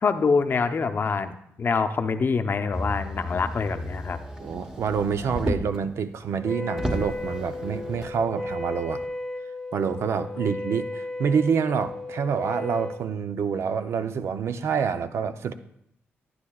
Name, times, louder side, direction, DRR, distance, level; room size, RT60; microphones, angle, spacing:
voice 1, 0.0-1.3 1.6-4.2, left 5 dB, 45° left, 8 dB, 0.6 m, -25 dB
Motor vehicle (road), 2.7-5.9 6.4-6.5 6.7-8.2 9.0-9.1, equal, 15° right, 1.1 m, -33 dB
voice 2, 4.4-9.0 9.7-15.5, right 6 dB, 70° right, 10 dB, 0.5 m, -27 dB
Wind instrument woodwind instrument, 6.4-13.1, left 2 dB, 10° left, 1.0 m, -34 dB
11.5 x 9.5 x 2.3 m, 0.75 s
cardioid pair, 75°, 5 cm